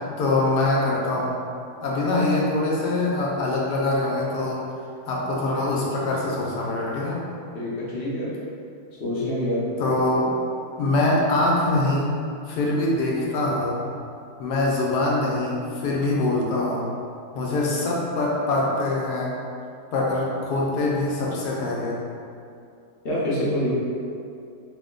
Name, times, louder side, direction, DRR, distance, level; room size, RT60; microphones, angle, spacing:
voice 1, 0.2-1.4 1.8-4.6 5.1-7.2 9.8-10.3 10.8-12.1 12.5-13.8 14.4-16.9 17.3-19.3 19.9-22.0, left 2 dB, 80° left, -3 dB, 1.2 m, -23 dB
voice 2, 7.5-8.3 9.0-9.6 23.0-23.7, left 1 dB, 50° left, -8 dB, 0.8 m, -26 dB
3.2 x 2.1 x 3.7 m, 2.5 s
omnidirectional pair, 1.8 m